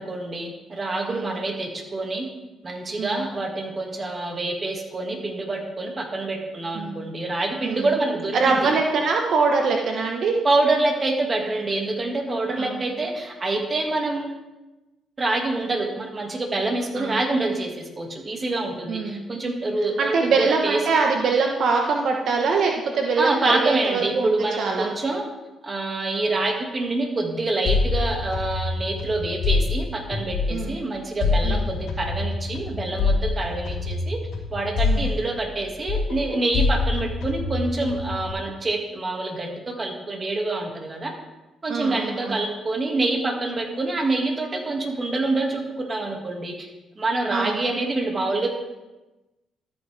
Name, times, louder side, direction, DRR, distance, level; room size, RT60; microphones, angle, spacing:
voice 1, 0.0-2.3 2.6-8.7 10.4-14.4 15.2-20.8 23.2-25.2 25.6-34.2 34.5-41.1 41.6-46.7 47.0-48.5, right 2 dB, 30° right, 2 dB, 2.0 m, -26 dB
voice 2, 8.3-10.3 12.6-12.8 17.0-17.2 18.9-19.2 20.0-24.9 30.5-30.8 31.4-31.7 34.8-35.1 41.7-42.4 47.3-47.6, right 4 dB, 65° right, 1 dB, 1.1 m, -23 dB
sound 1, 27.7-30.8 31.2-35.6 35.9-38.3, left 3 dB, 75° left, 3.2 m, -25 dB
13.0 x 8.6 x 3.4 m, 1.1 s
cardioid pair, 90°, 0 cm